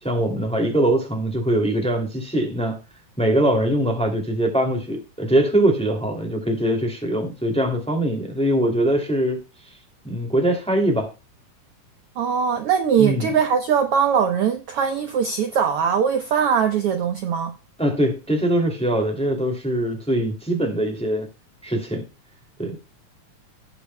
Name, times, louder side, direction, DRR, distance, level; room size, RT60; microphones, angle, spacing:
voice 1, 0.0-2.8 3.2-9.4 10.0-11.1 13.0-13.3 17.8-21.3 21.6-22.0 22.6-22.8, right 1 dB, ahead, 2.0 m, -22 dB
voice 2, 12.2-17.5, right 7 dB, 65° right, 1.6 m, -21 dB
18.0 x 6.9 x 2.2 m
omnidirectional pair, 3.4 m